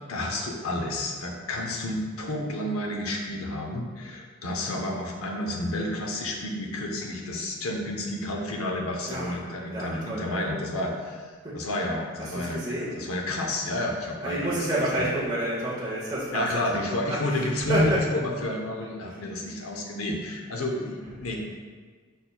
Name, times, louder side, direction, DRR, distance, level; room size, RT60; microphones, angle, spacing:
voice 1, 0.1-14.5 15.0-15.1 16.3-21.4, left 1 dB, 90° left, 1 dB, 0.7 m, -30 dB
voice 2, 9.1-9.4 9.7-10.8 11.4-11.5 12.2-13.0 14.2-16.4 16.9-17.0 17.3-18.0, right 1 dB, 20° right, -9 dB, 0.9 m, -29 dB
5.4 x 4.3 x 2.3 m, 1.5 s
head